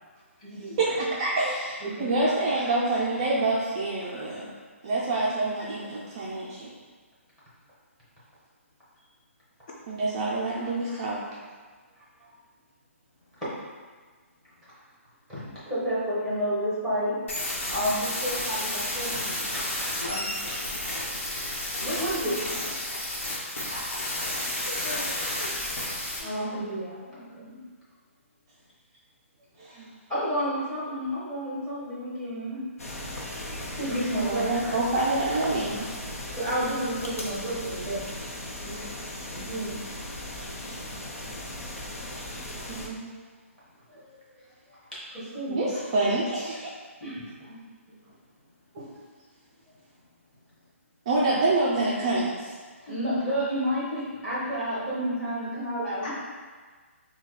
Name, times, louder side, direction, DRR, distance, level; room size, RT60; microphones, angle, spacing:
voice 1, 0.8-4.5 4.8-6.7 9.9-11.2 29.6-29.9 34.1-36.0 42.7-43.1 45.5-46.7 51.1-52.5, right 2 dB, 20° right, -6 dB, 0.4 m, -27 dB
voice 2, 1.8-2.3 4.0-4.2 10.6-10.7 12.0-12.4 15.3-17.2 17.4-19.7 20.1-20.6 21.8-22.4 22.9-23.0 23.9-24.0 25.6-25.7 26.2-27.6 30.1-32.6 33.6-35.0 36.3-38.1 38.4-38.9 39.3-39.8 42.0-42.3 43.9-44.2 44.9-45.6 47.0-47.6 47.9-48.0 48.8-48.9 52.8-56.1, equal, 5° left, -10 dB, 1.2 m, -31 dB
sound 1, 17.3-26.2, left 1 dB, 60° left, 1.3 m, -31 dB
voice 3, 24.6-25.5 56.0-56.1, left 2 dB, 35° left, -5 dB, 0.5 m, -38 dB
sound 2, 32.8-42.9, left 1 dB, 85° left, 0.8 m, -37 dB
5.5 x 2.2 x 3.2 m, 1.5 s
hypercardioid pair, 170°, 8 cm